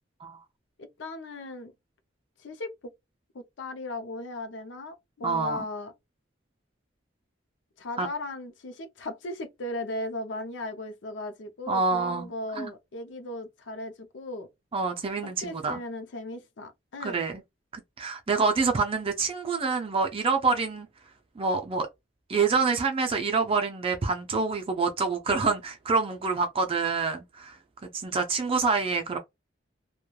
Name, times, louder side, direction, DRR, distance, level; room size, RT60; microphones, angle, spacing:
voice 1, 0.8-1.7 2.4-2.9 3.3-5.9 7.8-14.5 15.2-17.2 18.4-18.5, left 2 dB, 75° left, 0.5 m, -37 dB
voice 2, 5.2-5.6 8.0-8.1 11.7-12.3 12.5-12.7 14.7-15.8 17.0-17.3 17.7-20.9 21.4-21.9 22.3-29.2, right 4 dB, 30° right, 0.4 m, -27 dB
3.0 x 2.2 x 2.2 m
head